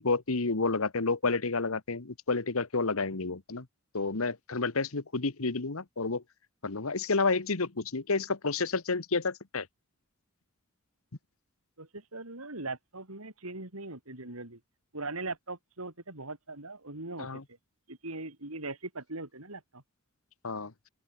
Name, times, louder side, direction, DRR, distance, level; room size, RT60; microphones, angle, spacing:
voice 1, 0.0-3.7 3.9-6.2 6.6-9.7 17.2-17.4 20.4-20.7, left 3 dB, 70° left, 1.3 m, -30 dB
voice 2, 11.8-14.6 14.9-17.3 17.9-19.8, right 2 dB, 75° right, 4.7 m, -40 dB
open air
head